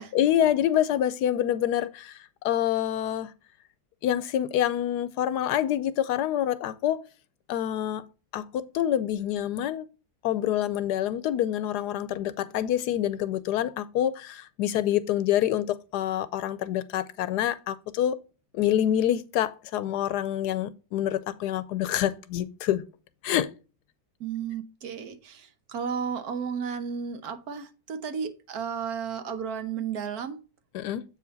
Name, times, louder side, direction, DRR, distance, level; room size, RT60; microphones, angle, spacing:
voice 1, 0.1-3.3 4.0-7.0 7.5-8.1 8.3-9.9 10.2-18.2 18.5-22.8 23.2-23.5 30.7-31.0, left 11 dB, 85° left, 1.2 m, -26 dB
voice 2, 24.2-30.4, right 7 dB, 70° right, 1.3 m, -33 dB
7.9 x 5.0 x 4.0 m
omnidirectional pair, 1.7 m